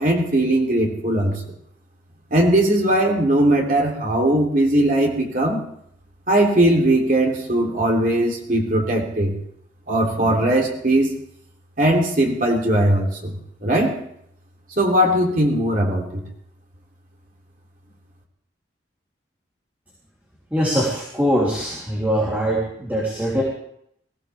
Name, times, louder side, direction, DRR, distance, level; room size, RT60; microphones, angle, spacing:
voice 1, 0.0-1.4 2.3-5.6 6.3-9.3 9.9-11.1 11.8-13.3 13.6-14.0 14.8-16.2, right 1 dB, 45° right, 0 dB, 3.2 m, -19 dB
voice 2, 20.5-23.4, equal, 10° right, -5 dB, 3.2 m, -22 dB
22.5 x 16.0 x 3.5 m, 0.70 s
head